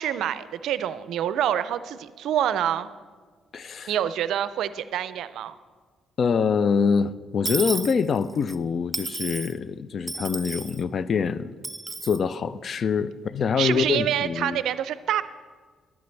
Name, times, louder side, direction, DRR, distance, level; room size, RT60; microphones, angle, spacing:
voice 1, 0.0-2.9 3.9-5.6 13.6-15.2, right 10 dB, 80° right, 14 dB, 0.4 m, -26 dB
voice 2, 3.5-3.9 6.2-11.5 12.0-14.6, left 6 dB, 55° left, 16 dB, 0.4 m, -25 dB
Dishes pots and pans / Coin (dropping), 7.4-8.6 8.9-9.5 10.1-10.8 11.6-12.2, right 3 dB, 20° right, 0.5 m, -32 dB
11.5 x 9.5 x 3.3 m, 1.5 s
cardioid pair, 90°, 0 cm